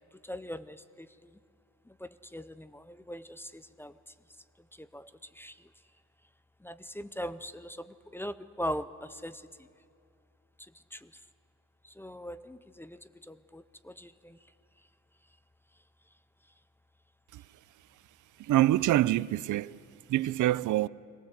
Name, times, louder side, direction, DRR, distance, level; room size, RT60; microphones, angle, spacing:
voice 1, 0.2-1.4 1.9-4.0 4.7-5.7 6.6-9.7 10.6-11.2 11.8-14.4, equal, 10° left, 0.4 m, -41 dB
voice 2, 18.4-19.8 20.1-20.9, right 14 dB, 80° right, 0.5 m, -25 dB
22.0 x 17.0 x 8.0 m
wide cardioid pair, 155°, 30 cm